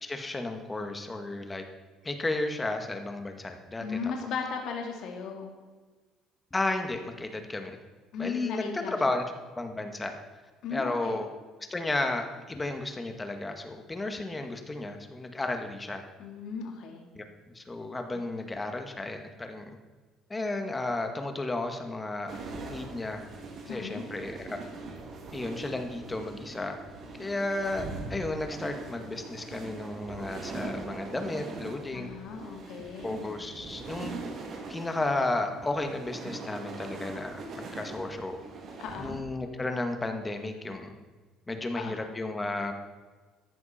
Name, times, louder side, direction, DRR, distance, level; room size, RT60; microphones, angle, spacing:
voice 1, 0.0-1.6 2.0-4.0 6.5-7.8 8.2-9.2 9.6-10.1 10.7-11.3 11.7-16.0 17.1-17.2 17.6-19.7 20.3-22.4 22.7-23.2 23.7-24.6 25.3-26.8 27.2-32.1 33.0-34.2 34.7-38.4 39.0-41.0 41.5-42.7, left 2 dB, 15° left, 5 dB, 1.8 m, -33 dB
voice 2, 3.8-5.5 8.1-9.0 10.6-11.2 16.2-17.0 18.1-18.2 23.7-24.0 31.9-33.2 38.8-39.2 41.7-42.0, left 5 dB, 65° left, 2 dB, 2.2 m, -36 dB
sound 1, 22.3-39.2, right 3 dB, 50° right, 2.7 m, -41 dB
14.5 x 11.0 x 4.4 m, 1.4 s
cardioid pair, 115°, 0 cm